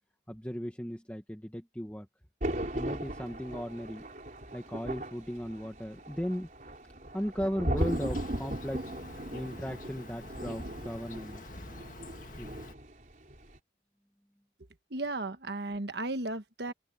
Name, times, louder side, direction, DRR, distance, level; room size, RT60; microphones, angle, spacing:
voice 1, 0.3-2.1 2.7-4.0 4.5-6.5 7.1-8.9 9.3-11.5 12.4-12.5, equal, 10° left, 1.7 m, -36 dB
Thunder, 2.4-13.0 13.3-13.6, right 1 dB, 45° right, 4.3 m, -37 dB
Insect, 7.8-12.7, left 2 dB, 45° left, 1.9 m, -48 dB
voice 2, 14.9-16.7, right 2 dB, 70° right, 1.4 m, -35 dB
head